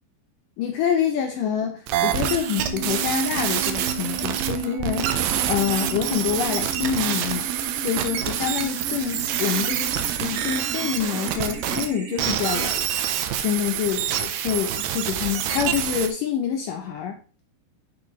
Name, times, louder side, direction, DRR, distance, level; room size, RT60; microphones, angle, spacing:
voice 1, 0.6-7.5 7.8-17.4, left 9 dB, 85° left, 3 dB, 1.9 m, -27 dB
sound 1, 1.9-11.9 12.2-16.1, right 10 dB, 85° right, 2.9 m, -26 dB
sound 2, 2.3-12.3, right 7 dB, 70° right, 3.9 m, -34 dB
11.0 x 5.2 x 3.2 m, 0.38 s
omnidirectional pair, 4.8 m